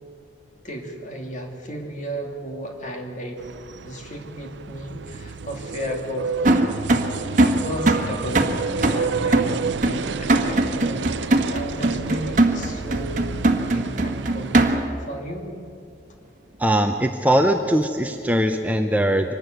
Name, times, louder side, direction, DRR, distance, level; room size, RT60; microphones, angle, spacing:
voice 1, 0.6-3.4 3.8-6.5 7.3-13.3 13.7-14.6 15.1-15.5, equal, 40° left, 2 dB, 2.8 m, -34 dB
sound 1, 3.4-14.6, right 5 dB, 70° right, 0.5 m, -30 dB
sound 2, 6.5-15.1, right 2 dB, 40° right, 1.4 m, -21 dB
voice 2, 16.6-19.3, right 1 dB, 10° right, 5 dB, 0.7 m, -20 dB
24.5 x 12.5 x 9.3 m, 2.5 s
head